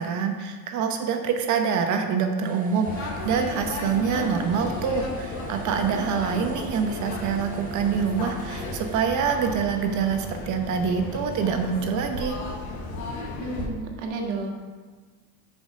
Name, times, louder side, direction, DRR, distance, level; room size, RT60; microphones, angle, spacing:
voice 1, 0.0-12.4, right 6 dB, 45° right, 5 dB, 0.9 m, -26 dB
sound 1, 2.4-9.0, right 3 dB, 20° right, 0.5 m, -43 dB
sound 2, 2.8-13.7, left 3 dB, 45° left, 1.3 m, -34 dB
voice 2, 13.4-14.5, right 3 dB, 85° right, 1 dB, 1.7 m, -31 dB
6.1 x 5.3 x 6.3 m, 1.4 s
supercardioid pair, 125°, 42 cm